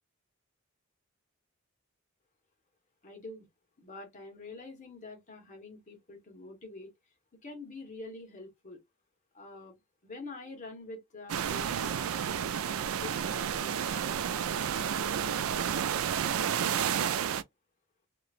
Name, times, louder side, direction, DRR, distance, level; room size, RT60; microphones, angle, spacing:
voice 1, 3.0-3.5 3.8-6.9 7.4-8.8 9.3-9.8 10.0-15.9, left 2 dB, 35° left, 1.3 m, -47 dB
sound 1, 11.3-17.4, right 8 dB, 75° right, 0.4 m, -31 dB
3.0 x 2.9 x 2.5 m
head